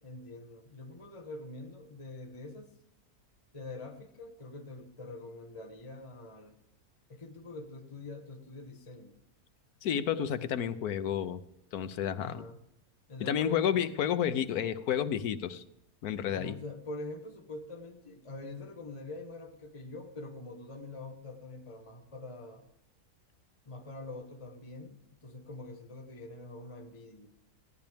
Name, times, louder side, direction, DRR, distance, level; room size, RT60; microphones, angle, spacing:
voice 1, 0.0-2.7 3.5-6.6 7.1-9.1 12.1-12.6 13.1-13.9 16.3-22.6 23.7-27.3, left 2 dB, 20° left, 2 dB, 1.3 m, -44 dB
voice 2, 9.8-11.4 11.7-12.4 13.2-15.6 16.0-16.6, left 9 dB, 90° left, 11 dB, 1.3 m, -31 dB
17.0 x 10.5 x 3.5 m, 0.80 s
omnidirectional pair, 1.6 m